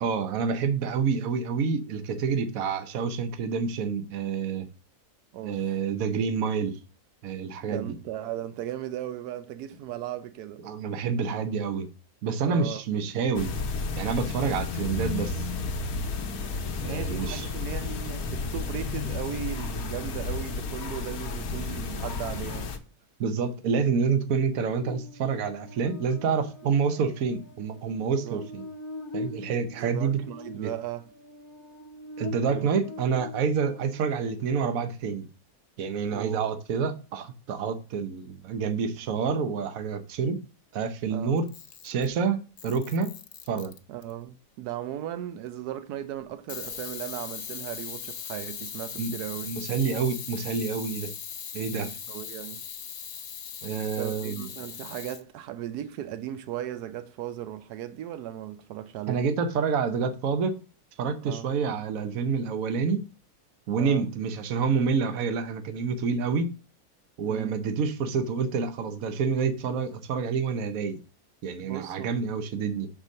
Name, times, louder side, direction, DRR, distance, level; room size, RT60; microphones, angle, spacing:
voice 1, 0.0-4.7 5.4-6.8 7.2-8.0 10.6-11.9 12.2-13.5 14.0-15.5 16.8-17.5 23.2-28.6 29.1-30.2 30.5-30.7 32.2-35.3 35.8-40.4 40.7-41.5 41.8-43.1 43.5-43.7 49.0-49.1 49.4-51.1 51.5-51.9 53.6-54.5 59.1-60.6 61.0-63.0 63.7-66.5 67.2-71.0 71.4-72.9, right 5 dB, 65° right, 1.2 m, -28 dB
voice 2, 5.3-5.8 7.6-10.6 12.4-12.8 16.8-22.7 28.0-28.4 29.8-31.1 32.4-32.7 36.1-36.5 41.1-41.4 43.9-49.5 51.8-52.6 54.0-59.3 61.2-61.5 63.8-64.1 67.3-67.6 71.6-72.2, right 11 dB, 90° right, 1.2 m, -37 dB
sound 1, 13.3-22.8, left 4 dB, 70° left, 1.3 m, -32 dB
Buzz, 24.8-34.3, left 2 dB, 20° left, 0.6 m, -42 dB
Camera, 41.4-42.1 42.6-44.1 46.5-55.2, left 8 dB, 50° left, 0.8 m, -39 dB
6.3 x 4.0 x 6.3 m
omnidirectional pair, 1.6 m